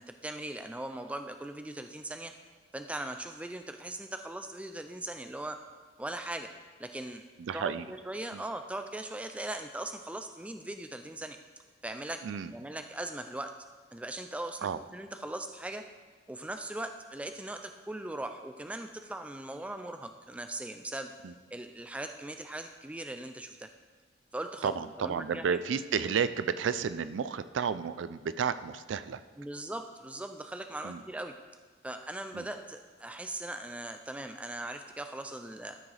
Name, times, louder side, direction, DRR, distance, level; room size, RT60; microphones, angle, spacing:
voice 1, 0.0-2.3 2.7-5.6 6.0-6.5 6.8-7.3 7.5-11.4 11.8-12.2 12.5-13.5 13.9-15.9 16.3-21.1 21.5-23.7 24.3-25.6 29.4-31.3 31.8-35.8, right 1 dB, 5° right, 7 dB, 0.3 m, -39 dB
voice 2, 7.4-7.9 8.3-8.4 12.2-12.5 14.6-14.8 21.2-21.3 24.6-29.2 30.8-31.0 32.3-32.5, right 6 dB, 85° right, 13 dB, 0.4 m, -32 dB
13.0 x 6.1 x 3.3 m, 1.5 s
head